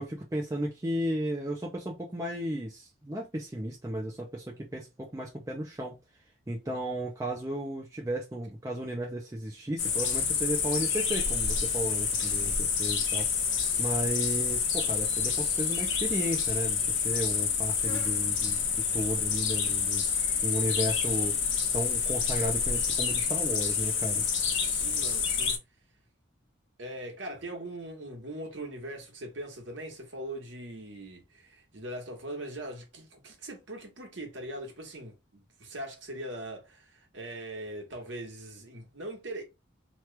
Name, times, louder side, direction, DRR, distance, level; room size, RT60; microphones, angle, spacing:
voice 1, 0.0-6.0 6.5-21.4 21.7-24.2, right 1 dB, 15° right, 0.5 m, -34 dB
voice 2, 6.7-7.0 24.4-25.6 26.8-39.4, right 1 dB, 65° right, 1.2 m, -41 dB
sound 1, 9.8-25.6, left 6 dB, 65° left, 0.8 m, -28 dB
3.0 x 2.4 x 3.2 m
head